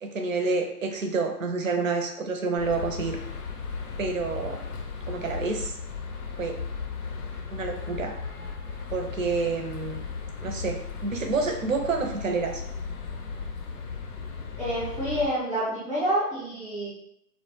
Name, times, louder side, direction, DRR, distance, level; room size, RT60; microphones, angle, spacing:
voice 1, 0.0-3.2 4.0-4.6 5.1-5.8 6.4-6.6 7.5-8.1 8.9-10.0 10.4-12.6, right 4 dB, 55° right, 3 dB, 0.5 m, -28 dB
sound 1, 2.6-15.3, left 5 dB, 70° left, 0.6 m, -36 dB
voice 2, 14.6-16.9, right 1 dB, 10° left, -11 dB, 0.6 m, -28 dB
2.1 x 2.0 x 3.0 m, 0.74 s
figure-of-eight pair, 150°, 47 cm